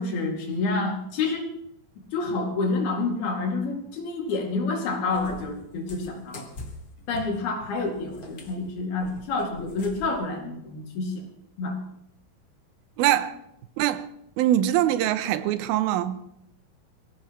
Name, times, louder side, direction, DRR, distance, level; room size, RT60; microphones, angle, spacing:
voice 1, 0.0-1.5 2.1-6.5 7.1-11.2 11.6-11.8, left 3 dB, 80° left, 4.3 m, -28 dB
Cat, 5.1-10.2, left 2 dB, 55° left, 0.9 m, -44 dB
voice 2, 13.0-13.4 13.8-14.1 14.4-16.2, right 12 dB, 85° right, 2.6 m, -23 dB
24.0 x 16.0 x 3.1 m
omnidirectional pair, 4.3 m